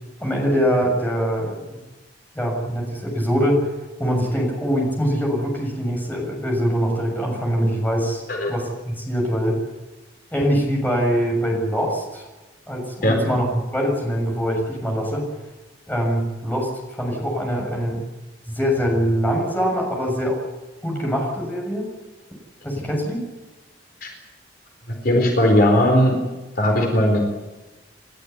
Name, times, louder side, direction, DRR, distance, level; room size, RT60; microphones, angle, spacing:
voice 1, 0.2-1.8 2.4-3.7 4.0-8.2 8.5-9.6 10.3-12.2 12.7-15.3 15.9-18.0 18.5-20.4 20.8-21.9 22.6-23.2, equal, 10° left, -1 dB, 7.2 m, -23 dB
voice 2, 25.0-26.1 26.6-27.3, left 1 dB, 50° left, 2 dB, 4.2 m, -17 dB
29.0 x 13.5 x 9.7 m, 1.1 s
head